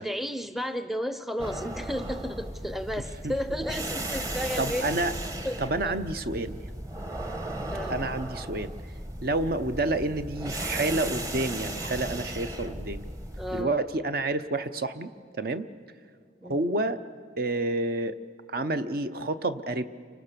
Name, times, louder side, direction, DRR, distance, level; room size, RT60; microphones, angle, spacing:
voice 1, 0.0-4.9 5.4-6.0 7.7-8.0 13.4-13.8 16.4-16.6, equal, ahead, 10 dB, 0.6 m, -33 dB
sound 1, 1.4-13.6, right 1 dB, 20° right, 1.1 m, -36 dB
voice 2, 4.6-5.1 5.6-6.6 7.9-8.7 9.2-13.0 13.5-15.1 15.4-15.7 16.4-17.0 17.4-18.2 18.5-19.9, right 2 dB, 50° right, 10 dB, 0.8 m, -29 dB
30.0 x 25.0 x 6.8 m, 2.1 s
head